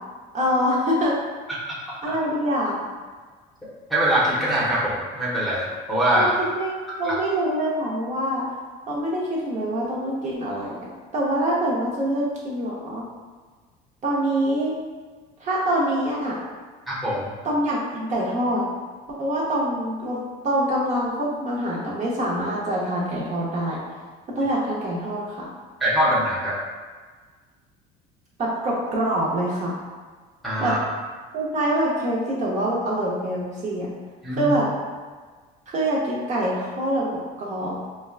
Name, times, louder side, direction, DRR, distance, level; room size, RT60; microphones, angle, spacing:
voice 1, 0.3-1.1 2.0-2.8 6.1-6.7 7.0-8.4 8.9-13.0 14.0-14.7 15.4-16.4 17.4-18.6 19.2-23.8 24.3-25.5 28.4-29.7 30.6-30.7 31.3-33.9 34.3-34.7 35.7-37.9, right 1 dB, 40° right, -5 dB, 0.8 m, -25 dB
voice 2, 3.6-6.3 7.0-7.1 16.9-17.3 25.8-26.6 30.4-30.8 34.2-34.5, right 1 dB, ahead, -8 dB, 0.8 m, -23 dB
4.4 x 2.2 x 2.4 m, 1.5 s
cardioid pair, 120°, 19 cm